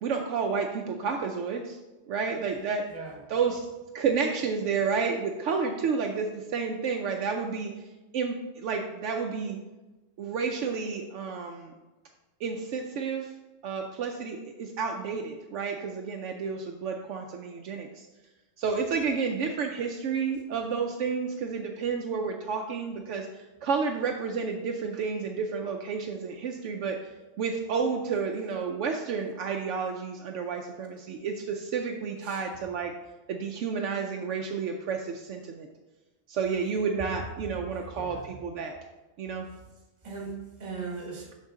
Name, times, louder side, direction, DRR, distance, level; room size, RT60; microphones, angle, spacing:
voice 1, 0.0-1.8 2.1-2.8 3.3-3.6 3.9-7.9 8.1-9.6 10.2-11.7 12.4-13.3 13.6-18.1 18.6-27.0 27.4-32.9 33.3-35.7 36.3-38.8 39.2-39.5, right 5 dB, 75° right, 3 dB, 0.9 m, -31 dB
voice 2, 2.9-3.2 32.2-32.4 37.7-38.2 40.0-41.3, right 4 dB, 35° right, 0 dB, 1.3 m, -39 dB
6.5 x 5.7 x 3.6 m, 1.1 s
omnidirectional pair, 1.3 m